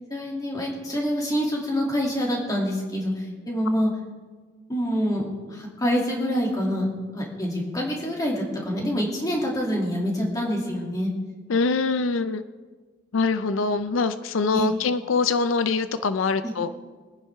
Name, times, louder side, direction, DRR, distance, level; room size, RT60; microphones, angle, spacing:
voice 1, 0.1-3.9 4.7-6.9 7.1-11.1 14.5-14.7, equal, 20° left, -2 dB, 2.7 m, -26 dB
voice 2, 11.5-12.4 13.1-16.7, left 4 dB, 80° left, 12 dB, 0.5 m, -24 dB
24.0 x 10.0 x 3.6 m, 1.5 s
head